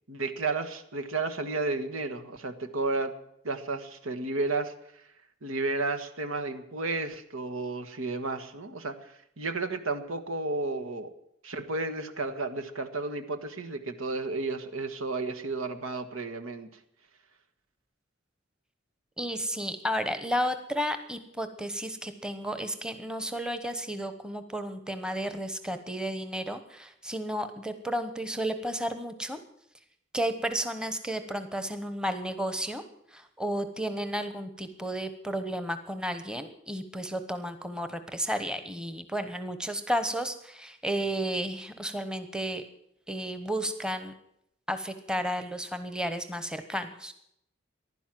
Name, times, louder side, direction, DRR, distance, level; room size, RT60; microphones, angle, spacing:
voice 1, 0.1-3.1 3.4-4.7 5.4-11.1 11.4-16.7, right 3 dB, 85° right, 7 dB, 1.5 m, -32 dB
voice 2, 19.2-29.4 30.1-32.8 33.1-42.6 43.1-44.1 44.7-47.1, equal, 5° right, 9 dB, 1.0 m, -32 dB
15.5 x 11.5 x 7.6 m, 0.75 s
head